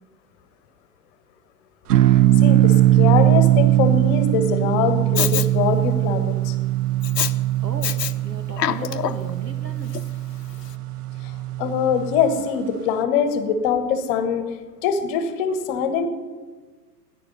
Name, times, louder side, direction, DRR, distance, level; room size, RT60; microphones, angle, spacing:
sound 1, 1.9-12.4, right 14 dB, 70° right, 0.7 m, -20 dB
voice 1, 2.4-6.5 11.6-14.5 14.8-16.1, left 6 dB, 35° left, 10 dB, 1.2 m, -23 dB
Respiratory sounds, 5.2-5.5 7.0-7.3 7.8-8.1 8.5-9.3 9.9-10.0, left 10 dB, 80° left, 0.7 m, -24 dB
voice 2, 7.6-10.0, right 3 dB, 90° right, 7 dB, 1.5 m, -36 dB
14.0 x 10.0 x 5.3 m, 1.4 s
figure-of-eight pair, 110°, 48 cm